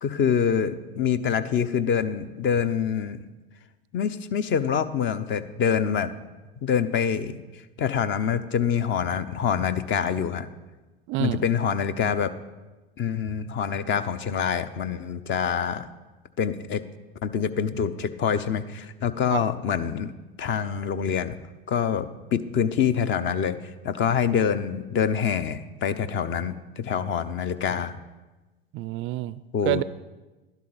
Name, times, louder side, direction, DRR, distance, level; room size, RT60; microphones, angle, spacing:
voice 1, 0.0-3.2 3.9-6.1 6.6-7.4 7.8-10.5 11.2-12.3 13.0-15.9 16.4-16.8 17.2-20.1 20.4-21.3 21.7-23.6 23.8-28.0 29.5-29.8, left 7 dB, 40° left, 12 dB, 0.8 m, -25 dB
voice 2, 11.1-11.4 19.3-19.4 28.7-29.8, right 16 dB, 40° right, 17 dB, 0.4 m, -28 dB
12.0 x 11.5 x 4.1 m, 1.2 s
hypercardioid pair, 85°, 31 cm